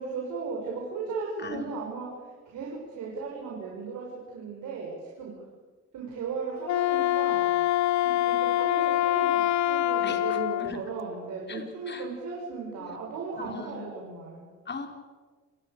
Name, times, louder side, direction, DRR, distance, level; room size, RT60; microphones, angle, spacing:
voice 1, 0.0-2.1 2.5-4.1 4.3-4.9 5.2-5.3 5.9-7.5 8.0-14.5, right 4 dB, 75° right, -2 dB, 6.5 m, -36 dB
voice 2, 1.4-1.8 10.0-10.8 11.5-12.1 12.8-13.0 13.4-13.8 14.7-14.9, left 5 dB, 35° left, 4 dB, 4.4 m, -40 dB
Wind instrument woodwind instrument, 6.6-10.7, left 14 dB, 65° left, 0.6 m, -25 dB
28.5 x 19.5 x 6.9 m, 1.4 s
cardioid pair, 90°, 30 cm